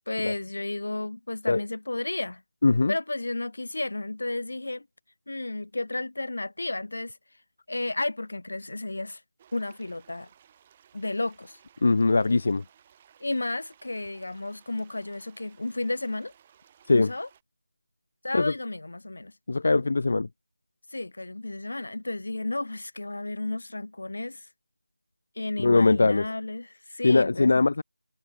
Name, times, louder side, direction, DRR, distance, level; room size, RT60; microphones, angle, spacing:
voice 1, 0.1-2.4 2.9-4.9 5.3-7.2 7.7-9.2 9.5-10.3 10.9-11.6 13.2-16.3 16.9-17.3 18.2-19.3 20.9-24.5 25.4-27.6, left 2 dB, 65° left, 1.1 m, -32 dB
voice 2, 2.6-2.9 11.8-12.6 16.9-17.1 18.3-18.5 19.5-20.3 25.6-26.2 27.0-27.8, left 3 dB, 50° left, 0.3 m, -21 dB
sound 1, 9.4-17.4, right 9 dB, 20° right, 7.9 m, -59 dB
figure-of-eight pair, 170°, 0 cm